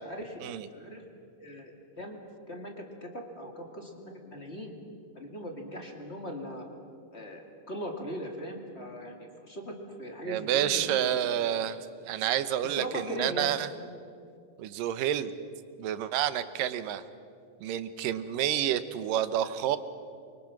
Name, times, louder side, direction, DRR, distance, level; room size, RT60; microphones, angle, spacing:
voice 1, 0.0-0.4 0.7-1.0 1.4-2.2 2.5-4.7 5.1-6.7 7.1-11.2 12.6-13.5, equal, 25° left, 2 dB, 2.0 m, -39 dB
voice 2, 10.3-11.8 12.1-13.7 14.6-15.3 15.8-17.0 17.6-19.8, right 11 dB, 80° right, 12 dB, 2.6 m, -29 dB
28.5 x 24.0 x 6.0 m, 2.3 s
omnidirectional pair, 3.9 m